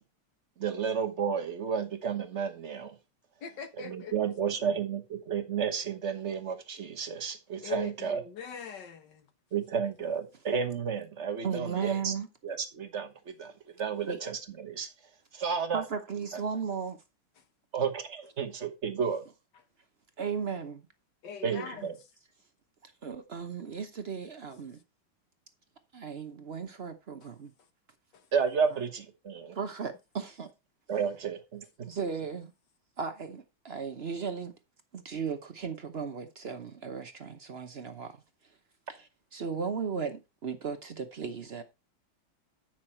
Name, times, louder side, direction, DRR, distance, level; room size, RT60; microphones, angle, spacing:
voice 1, 0.6-3.0 3.8-8.2 9.5-12.1 12.4-13.5 13.8-14.9 15.3-15.8 17.7-19.2 21.4-22.0 28.3-29.6 30.9-31.9, right 6 dB, 40° right, 1.2 m, -32 dB
voice 2, 3.4-4.1 7.6-9.3 21.2-21.9 27.2-27.3 28.1-28.3, left 7 dB, 60° left, 1.7 m, -41 dB
voice 3, 11.4-12.3 14.0-14.2 15.7-17.0 20.2-20.8 21.7-21.8 22.8-24.8 25.9-27.5 29.5-30.5 31.8-32.5 33.0-34.5 34.9-38.2 38.9-39.1 39.3-41.6, right 6 dB, 65° right, 0.6 m, -36 dB
8.6 x 6.3 x 4.3 m
omnidirectional pair, 2.3 m